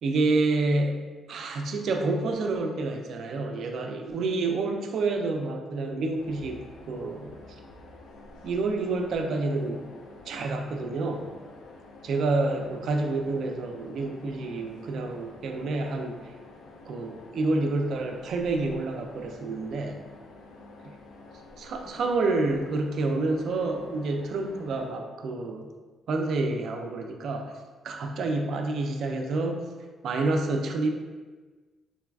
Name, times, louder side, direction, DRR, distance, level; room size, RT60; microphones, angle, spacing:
voice 1, 0.0-6.6 6.9-7.3 8.4-9.9 10.3-11.3 12.1-16.2 16.9-20.0 21.6-25.7 26.1-27.5 27.8-29.6 30.0-30.9, right 3 dB, 65° right, 4 dB, 0.4 m, -28 dB
sound 1, 6.2-24.9, left 2 dB, 85° left, 0.4 m, -49 dB
3.9 x 2.2 x 2.3 m, 1.3 s
cardioid pair, 90°, 0 cm